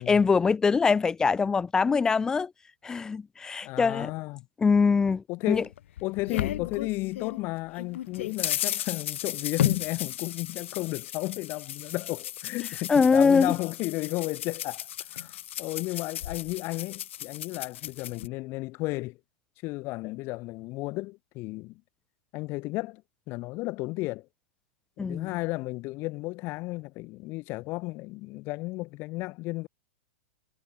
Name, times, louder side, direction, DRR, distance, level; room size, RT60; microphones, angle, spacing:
voice 1, 0.0-2.5 2.8-4.1 4.6-5.6 12.9-13.5 25.0-25.3, left 5 dB, 10° left, 0.3 m, -23 dB
voice 2, 3.6-4.5 5.3-5.7 6.0-14.9 15.1-19.2 19.6-21.8 22.3-23.0 23.3-24.3 25.0-29.7, left 22 dB, 35° left, 4.3 m, -33 dB
sound 1, 5.5-7.4 7.8-18.3, left 12 dB, 70° left, 6.3 m, -34 dB
hypercardioid pair, 150°, 7 cm